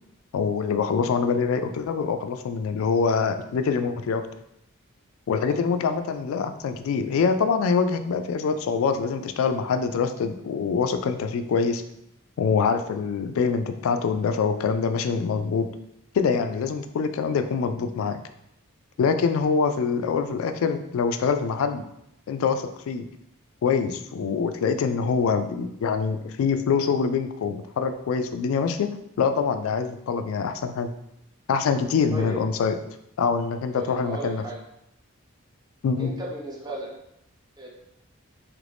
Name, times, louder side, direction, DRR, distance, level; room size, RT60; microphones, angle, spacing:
voice 1, 0.3-4.2 5.3-11.8 12.4-15.7 16.1-18.2 19.0-21.8 22.3-23.1 23.6-28.9 29.2-30.9 31.5-32.8 33.2-34.4 35.8-36.1, left 5 dB, 75° left, 9 dB, 0.3 m, -24 dB
voice 2, 33.7-34.6 36.0-36.9 37.6-37.7, right 2 dB, 20° right, -3 dB, 0.6 m, -35 dB
3.1 x 2.5 x 3.4 m, 0.79 s
head